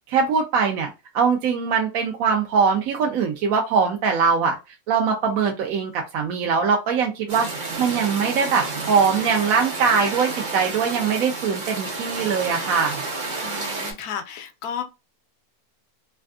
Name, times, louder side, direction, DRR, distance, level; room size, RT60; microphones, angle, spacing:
voice 1, 0.1-0.9 1.1-4.6 4.9-13.0, right 6 dB, 70° right, 1.0 m, -22 dB
sound 1, 7.3-13.9, right 3 dB, 45° right, 0.7 m, -30 dB
voice 2, 13.4-14.8, left 7 dB, 85° left, 1.2 m, -33 dB
3.3 x 2.5 x 2.3 m
omnidirectional pair, 1.6 m